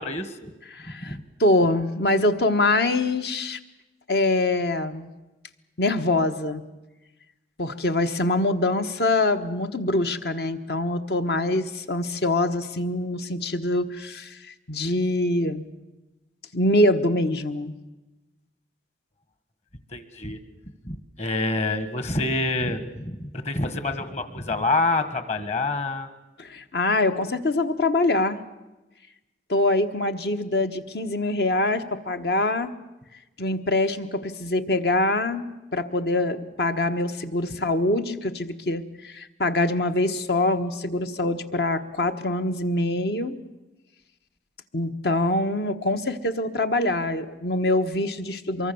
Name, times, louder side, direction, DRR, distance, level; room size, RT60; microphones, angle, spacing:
voice 1, 0.0-0.5 1.0-1.2 19.9-20.4 20.8-26.1, left 2 dB, 40° left, 11 dB, 1.6 m, -27 dB
voice 2, 0.7-3.6 4.1-5.1 5.8-6.6 7.6-15.6 16.5-17.7 26.4-28.4 29.5-32.7 33.4-43.4 44.7-48.7, left 2 dB, 65° left, 9 dB, 1.3 m, -24 dB
24.5 x 22.5 x 7.0 m, 1.1 s
head